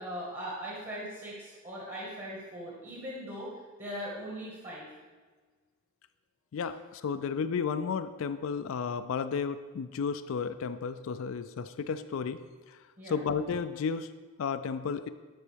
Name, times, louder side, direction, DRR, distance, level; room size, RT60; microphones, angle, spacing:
voice 1, 0.0-3.5 3.8-4.9 13.0-13.2, equal, 30° right, -5 dB, 1.5 m, -40 dB
voice 2, 6.5-12.4 12.7-12.8 13.1-14.1 14.4-15.1, left 6 dB, 60° left, 10 dB, 0.3 m, -33 dB
12.0 x 5.3 x 3.4 m, 1.4 s
head